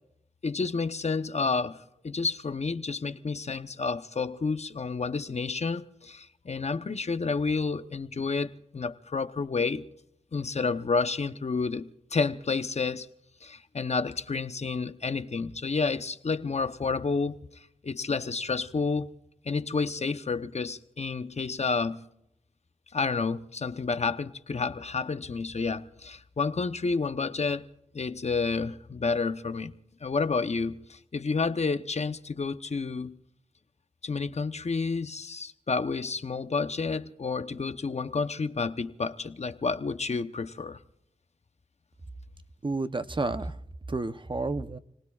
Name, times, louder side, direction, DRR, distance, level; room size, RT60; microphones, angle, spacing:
voice 1, 0.4-9.8 10.3-13.1 13.4-19.1 19.4-22.0 22.9-27.7 27.9-29.7 30.0-33.2 34.0-40.8, left 4 dB, 55° left, 0.9 m, -30 dB
voice 2, 42.6-43.6 43.9-44.8, right 3 dB, 40° right, 0.8 m, -30 dB
30.0 x 19.0 x 2.4 m
cardioid pair, 55°, 13 cm